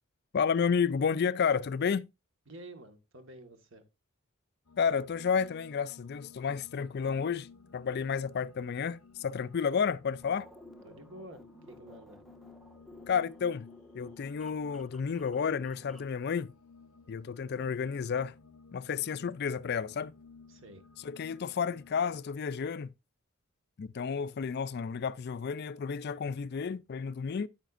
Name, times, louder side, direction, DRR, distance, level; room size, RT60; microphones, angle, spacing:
voice 1, 0.3-2.1 4.8-7.5 7.7-10.5 13.1-13.7 13.9-16.5 17.1-18.3 18.7-20.1 21.0-22.9 23.8-27.5, left 6 dB, 50° left, 0.4 m, -31 dB
voice 2, 2.5-3.8 10.8-12.2 20.5-20.8, right 1 dB, 60° right, 1.7 m, -50 dB
sound 1, 4.6-22.3, left 4 dB, 90° left, 0.8 m, -56 dB
sound 2, 10.2-16.2, equal, ahead, 0.6 m, -55 dB
9.3 x 9.1 x 2.5 m
head